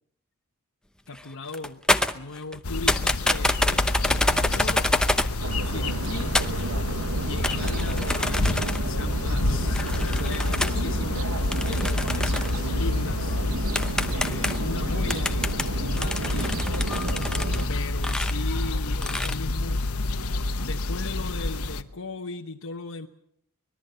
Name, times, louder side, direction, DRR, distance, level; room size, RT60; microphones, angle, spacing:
voice 1, 1.1-1.8 2.1-4.9 5.6-6.4 7.2-13.4 14.1-16.7 17.7-19.8 20.6-23.1, left 3 dB, 65° left, 2 dB, 1.1 m, -38 dB
sound 1, 1.1-1.2 1.5-2.6 2.9-5.4 6.3-6.6 7.4-8.9 9.7-10.8 11.5-12.6 13.3-13.4 13.8-14.7 15.1-17.6 18.0-18.3 19.0-19.4, left 1 dB, 5° left, 0.8 m, -27 dB
sound 2, 2.6-21.8, left 2 dB, 85° left, 1.1 m, -28 dB
sound 3, 5.4-17.7, right 2 dB, 70° right, 1.1 m, -32 dB
25.0 x 20.5 x 6.9 m, 0.73 s
head